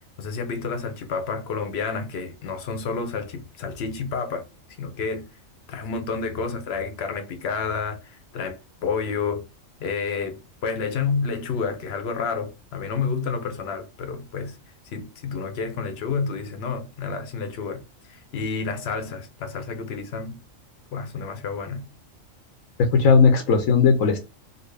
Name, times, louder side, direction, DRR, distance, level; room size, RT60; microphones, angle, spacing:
voice 1, 0.2-4.4 4.8-5.3 5.7-9.5 9.8-14.6 14.9-20.4 20.9-21.8, left 5 dB, 60° left, 0.8 m, -30 dB
voice 2, 22.8-24.2, left 5 dB, 80° left, 1.0 m, -17 dB
4.0 x 2.1 x 3.2 m
omnidirectional pair, 1.4 m